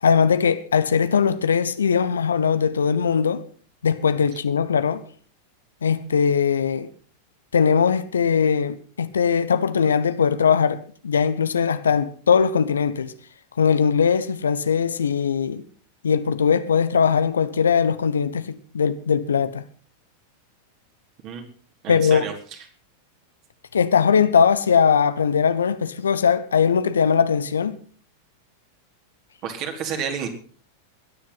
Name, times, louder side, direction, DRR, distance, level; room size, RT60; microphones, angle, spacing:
voice 1, 0.0-3.4 3.8-5.0 5.8-6.9 7.5-13.1 13.6-15.6 16.0-19.6 21.9-22.2 23.7-27.8, left 6 dB, 70° left, 1.1 m, -20 dB
voice 2, 21.8-22.3 29.4-30.3, right 7 dB, 40° right, 4.2 m, -30 dB
21.0 x 10.5 x 5.9 m
figure-of-eight pair, 90°, 0 cm